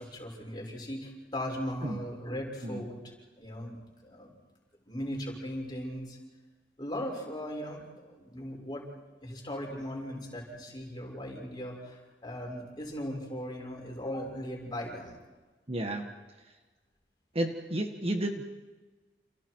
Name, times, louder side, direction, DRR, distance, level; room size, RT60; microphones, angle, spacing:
voice 1, 0.0-3.0 3.4-4.3 4.9-6.2 6.8-8.9 9.2-15.2, equal, 25° left, -1 dB, 6.7 m, -38 dB
voice 2, 15.7-16.1 16.4-16.5 17.3-18.4, right 1 dB, 35° right, 4 dB, 1.7 m, -32 dB
29.5 x 29.0 x 4.8 m, 1.3 s
head